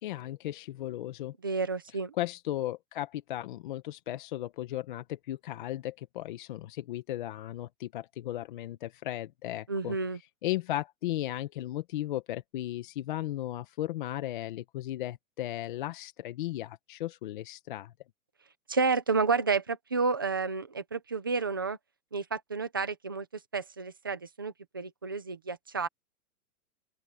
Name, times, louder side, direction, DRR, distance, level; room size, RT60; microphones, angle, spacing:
voice 1, 0.0-1.3 2.2-10.0 10.4-17.9, left 14 dB, 35° left, 0.8 m, -36 dB
voice 2, 1.4-2.1 9.7-10.2 18.7-21.8 22.1-23.3 23.5-25.9, right 4 dB, 15° right, 0.4 m, -30 dB
open air
hypercardioid pair, 170°, 45 cm